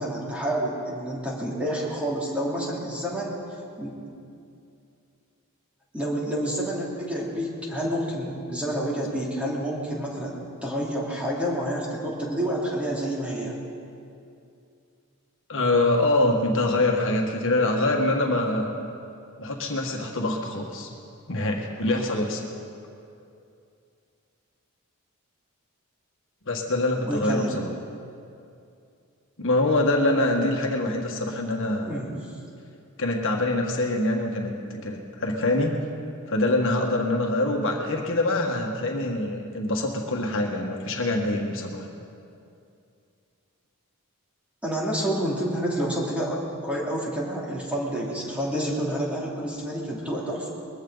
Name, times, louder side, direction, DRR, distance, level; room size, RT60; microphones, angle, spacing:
voice 1, 0.0-3.4 3.8-4.0 5.9-13.6 27.1-27.6 31.8-32.3 44.6-50.5, right 1 dB, 5° right, -5 dB, 2.9 m, -29 dB
voice 2, 15.5-18.8 19.4-20.9 21.3-22.4 26.5-27.7 29.4-32.0 33.0-35.8 36.3-41.9, left 2 dB, 65° left, 0 dB, 1.6 m, -24 dB
21.5 x 15.0 x 4.0 m, 2.5 s
head